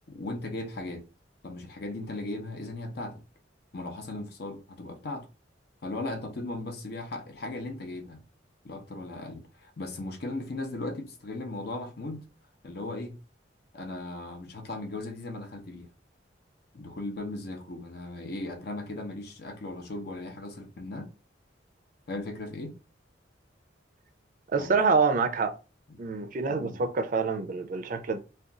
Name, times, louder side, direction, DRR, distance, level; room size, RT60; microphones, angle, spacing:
voice 1, 0.1-1.0 1.4-3.2 3.7-5.3 5.8-8.2 8.6-12.2 12.6-13.2 13.7-15.9 16.7-21.1 22.1-22.7 24.6-24.7 25.9-26.0 26.5-26.8, left 2 dB, 60° left, 0.7 m, -37 dB
voice 2, 24.5-25.5 26.0-28.2, right 4 dB, 45° right, 0.4 m, -26 dB
2.4 x 2.3 x 3.7 m
head